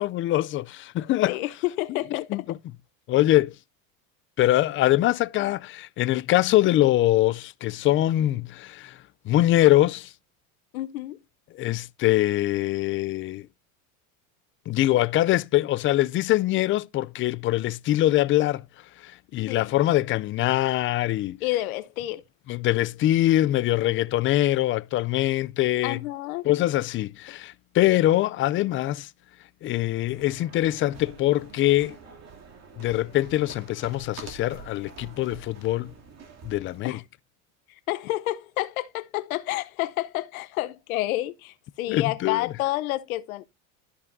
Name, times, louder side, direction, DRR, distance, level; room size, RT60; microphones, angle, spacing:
voice 1, 0.0-1.4 2.3-2.6 3.1-3.5 4.4-9.0 9.3-10.1 11.5-13.5 14.7-18.6 19.0-21.4 22.5-26.0 26.4-29.1 29.6-32.0 32.8-35.9 36.5-37.0 41.9-42.5, left 15 dB, 30° left, 0.4 m, -23 dB
voice 2, 1.2-2.5 10.7-11.2 19.5-19.7 21.4-22.2 25.8-26.5 36.8-37.0 37.9-43.5, left 16 dB, 90° left, 0.8 m, -29 dB
sound 1, 29.7-36.9, right 5 dB, 40° right, 2.6 m, -47 dB
13.5 x 5.4 x 2.6 m
supercardioid pair, 110°, 41 cm